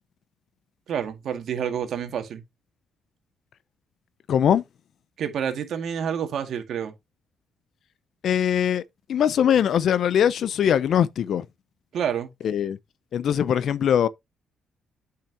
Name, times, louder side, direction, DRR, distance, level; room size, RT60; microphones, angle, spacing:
voice 1, 0.9-2.4 5.2-6.9 11.9-12.3, right 8 dB, 70° right, 1.9 m, -28 dB
voice 2, 4.3-4.6 8.2-8.8 9.1-11.4 12.4-12.8 13.1-14.1, left 9 dB, 65° left, 0.6 m, -21 dB
8.8 x 5.7 x 2.9 m
cardioid pair, 90°, 0 cm